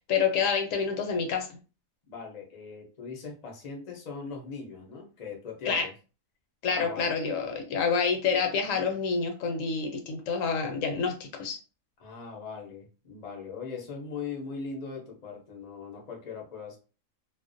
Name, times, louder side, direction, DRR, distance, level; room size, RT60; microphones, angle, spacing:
voice 1, 0.0-1.5 5.6-5.9 6.6-11.6, left 5 dB, 75° left, 4 dB, 0.9 m, -28 dB
voice 2, 2.1-5.9 6.7-7.2 12.0-16.8, left 5 dB, 45° left, 0 dB, 0.5 m, -40 dB
2.4 x 2.1 x 2.5 m, 0.34 s
omnidirectional pair, 1.4 m